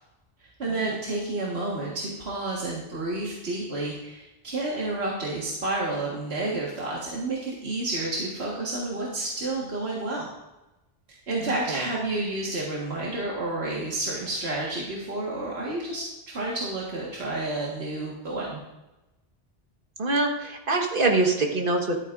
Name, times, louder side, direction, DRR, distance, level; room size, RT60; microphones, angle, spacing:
voice 1, 0.6-10.3 11.1-18.6, right 2 dB, 75° right, -4 dB, 2.0 m, -30 dB
voice 2, 11.4-11.9 20.0-22.0, right 2 dB, 55° right, 2 dB, 1.7 m, -24 dB
13.5 x 12.0 x 2.6 m, 1.0 s
omnidirectional pair, 1.1 m